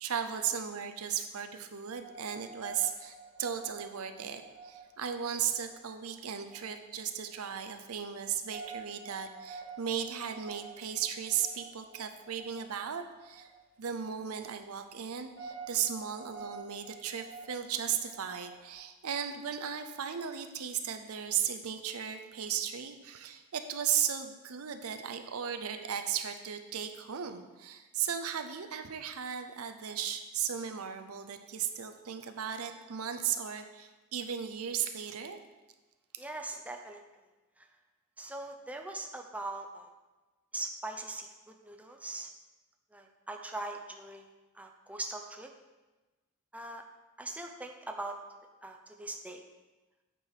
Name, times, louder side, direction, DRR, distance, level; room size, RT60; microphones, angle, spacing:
voice 1, 0.0-13.5 13.8-35.4, right 8 dB, 90° right, 7 dB, 0.6 m, -36 dB
sound 1, 1.9-18.7, right 4 dB, 15° left, 1.9 m, -50 dB
voice 2, 36.2-37.0 38.2-39.9 40.5-42.3 42.9-44.3 44.6-45.5 46.5-46.8 47.2-48.2 48.6-49.4, right 2 dB, 5° right, 4 dB, 0.5 m, -41 dB
8.7 x 4.7 x 4.9 m, 1.2 s
head